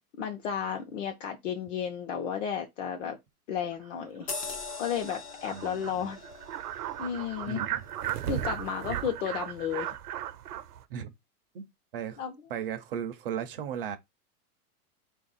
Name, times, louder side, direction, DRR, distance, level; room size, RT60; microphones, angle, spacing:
voice 1, 0.2-3.2 3.5-4.3 4.8-6.2 6.8-7.6 8.2-9.9 12.2-12.3, left 8 dB, 55° left, 0.9 m, -33 dB
sound 1, 3.7-3.8 4.3-4.4 4.7-4.8 5.1-5.2 5.4-10.8, right 11 dB, 85° right, 0.7 m, -36 dB
sound 2, 4.3-9.2 9.7-9.8, left 4 dB, 25° left, 0.4 m, -42 dB
voice 2, 5.5-6.1 7.5-7.8 10.9-11.1 11.5-12.2 12.5-14.0, right 8 dB, 40° right, 0.5 m, -36 dB
3.3 x 2.6 x 4.0 m
supercardioid pair, 165°, 45 cm